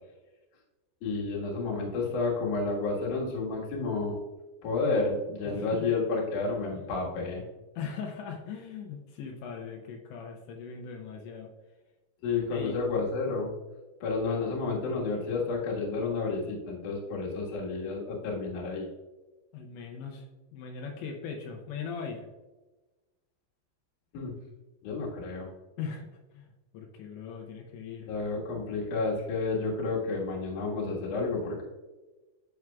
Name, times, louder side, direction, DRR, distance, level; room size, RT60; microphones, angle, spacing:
voice 1, 1.0-4.2 4.6-7.4 12.2-13.5 14.0-18.9 24.1-24.3 24.8-25.5 28.1-31.6, left 3 dB, 60° left, -3 dB, 2.4 m, -30 dB
voice 2, 5.5-5.9 6.7-6.9 7.8-11.5 12.5-12.8 19.5-20.3 20.5-22.3 25.8-28.1, left 6 dB, 80° left, 1 dB, 2.9 m, -40 dB
11.0 x 6.1 x 2.3 m, 1.2 s
omnidirectional pair, 5.4 m